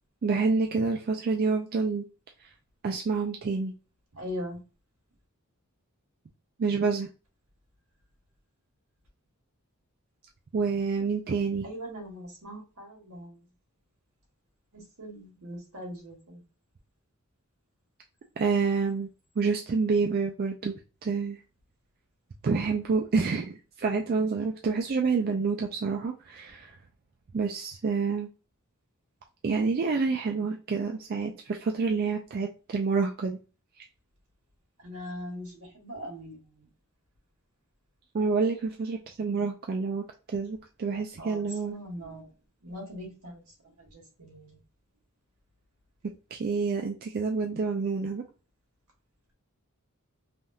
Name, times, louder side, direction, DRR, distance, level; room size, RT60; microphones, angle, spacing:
voice 1, 0.2-2.1 2.4-2.5 2.8-3.7 6.6-7.1 10.5-11.7 18.4-19.1 19.4-20.7 21.0-21.4 22.4-26.7 27.3-28.3 29.4-33.4 38.1-41.7 46.3-48.2, right 4 dB, 45° right, 2 dB, 0.3 m, -28 dB
voice 2, 4.1-4.6 11.6-13.5 14.7-16.4 34.8-36.7 41.2-42.3 42.6-44.6, equal, 80° right, 0 dB, 1.5 m, -41 dB
3.4 x 2.3 x 2.7 m, 0.32 s
head